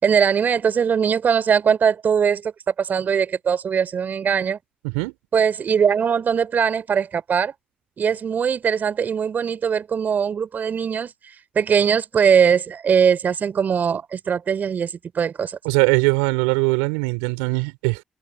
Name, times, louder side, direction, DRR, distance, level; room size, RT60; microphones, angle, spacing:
voice 1, 0.0-4.6 5.3-7.5 8.0-11.1 11.5-15.6, right 7 dB, 55° right, 4.7 m, -21 dB
voice 2, 15.6-18.0, right 31 dB, 85° right, 4.8 m, -21 dB
hypercardioid pair, 40°, 4 cm